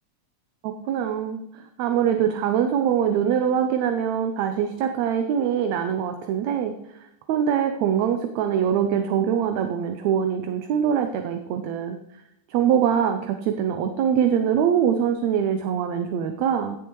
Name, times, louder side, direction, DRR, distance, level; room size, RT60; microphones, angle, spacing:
voice 1, 0.6-12.2 12.5-16.8, right 8 dB, 75° right, 6 dB, 1.9 m, -23 dB
16.5 x 7.0 x 3.1 m, 0.85 s
omnidirectional pair, 3.5 m